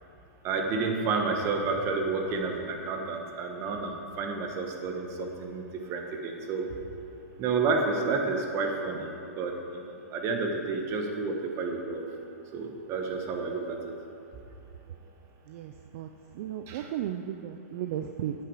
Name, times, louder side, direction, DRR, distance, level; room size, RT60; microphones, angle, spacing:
voice 1, 0.4-5.6 5.9-6.7 7.4-12.0 12.5-13.9 16.7-16.9, right 4 dB, 35° right, 3 dB, 1.3 m, -30 dB
voice 2, 15.5-16.1 16.3-18.4, right 11 dB, 55° right, 6 dB, 0.5 m, -35 dB
9.3 x 8.2 x 4.9 m, 2.9 s
hypercardioid pair, 130°, 8 cm